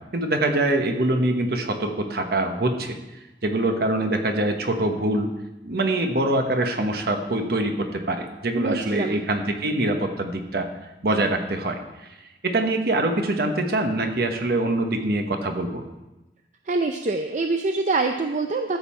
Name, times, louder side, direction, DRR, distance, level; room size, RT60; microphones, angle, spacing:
voice 1, 0.0-2.9 3.4-5.3 5.6-10.7 11.0-11.8 12.4-15.8, right 1 dB, 60° right, 5 dB, 1.2 m, -24 dB
voice 2, 8.6-9.2 16.7-18.8, right 3 dB, 45° right, 5 dB, 0.5 m, -25 dB
13.0 x 7.4 x 4.4 m, 1.0 s
head